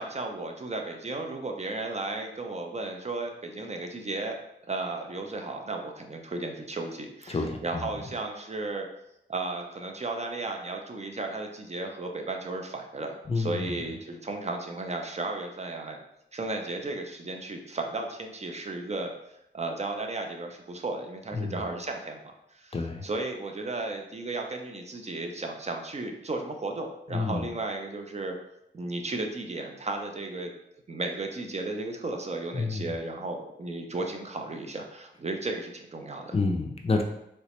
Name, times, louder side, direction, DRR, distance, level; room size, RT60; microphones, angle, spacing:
voice 1, 0.0-4.4 4.7-8.9 9.3-16.0 16.3-19.1 19.5-28.4 28.7-30.5 30.9-36.4, right 2 dB, 35° right, 3 dB, 0.4 m, -34 dB
voice 2, 7.3-7.8 13.3-13.7 21.3-21.6 22.7-23.1 27.1-27.5 32.5-32.9 36.3-37.0, left 3 dB, 35° left, 3 dB, 0.4 m, -29 dB
3.2 x 3.0 x 2.9 m, 0.82 s
wide cardioid pair, 100°, 19 cm